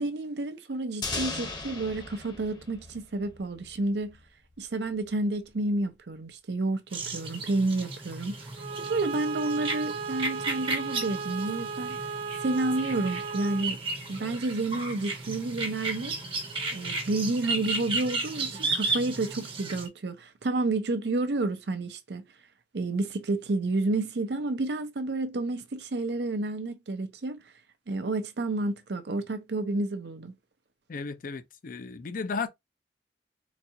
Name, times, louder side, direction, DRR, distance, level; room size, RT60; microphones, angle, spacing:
voice 1, 0.0-4.2 4.6-8.4 8.9-12.0 12.4-13.8 14.1-16.2 16.7-22.2 22.7-27.4 27.9-30.3, right 2 dB, 70° right, 0.6 m, -30 dB
sound 1, 1.0-3.8, left 3 dB, 25° left, 0.8 m, -37 dB
sound 2, 6.9-19.9, right 3 dB, 30° right, 0.8 m, -34 dB
Bowed string instrument, 8.6-13.7, right 5 dB, 55° right, 0.9 m, -35 dB
voice 2, 30.9-32.5, left 4 dB, 50° left, 0.5 m, -34 dB
4.0 x 2.3 x 2.7 m
head